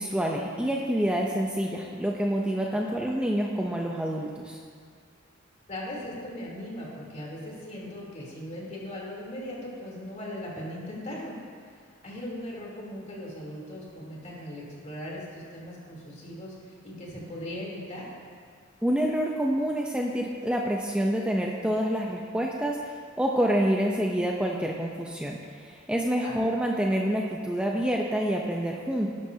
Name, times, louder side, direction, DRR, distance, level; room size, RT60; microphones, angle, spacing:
voice 1, 0.0-4.6 18.8-22.9 23.2-29.1, equal, 5° right, -1 dB, 0.7 m, -27 dB
voice 2, 2.6-2.9 5.7-11.3 12.0-18.1 26.2-26.4, left 1 dB, 40° left, -4 dB, 3.4 m, -39 dB
18.5 x 12.0 x 2.8 m, 2.1 s
head